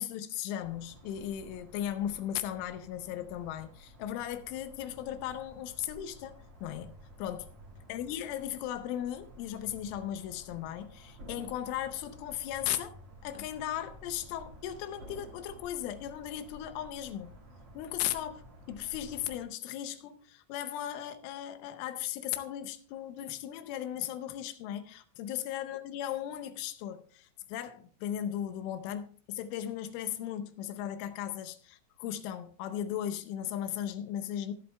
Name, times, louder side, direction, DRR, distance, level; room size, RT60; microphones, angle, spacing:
voice 1, 0.0-7.5 7.9-17.3 17.7-34.5, left 11 dB, 90° left, 3.3 m, -37 dB
sound 1, 0.6-19.4, equal, 40° right, 3.7 m, -52 dB
24.5 x 8.3 x 2.3 m
omnidirectional pair, 5.5 m